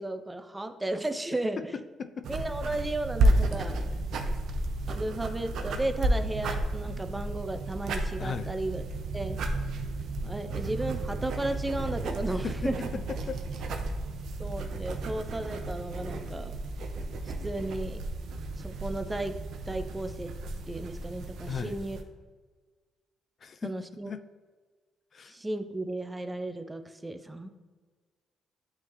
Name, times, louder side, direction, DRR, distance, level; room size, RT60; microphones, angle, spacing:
voice 1, 0.0-1.7 2.3-3.8 4.9-8.8 9.1-9.4 10.2-12.8 14.4-16.6 17.2-18.0 18.6-19.3 19.7-20.3 20.7-22.0 23.6-24.1 25.3-27.5, right 2 dB, 15° right, 8 dB, 0.5 m, -34 dB
voice 2, 1.6-2.3 8.2-8.5 12.4-13.4 21.5-21.8 23.4-23.7 24.0-24.2 25.1-25.4, left 6 dB, 50° left, 11 dB, 0.4 m, -37 dB
sound 1, 2.2-22.0, right 2 dB, 70° right, 0.7 m, -32 dB
8.6 x 3.7 x 3.1 m, 1.4 s
cardioid pair, 90°, 0 cm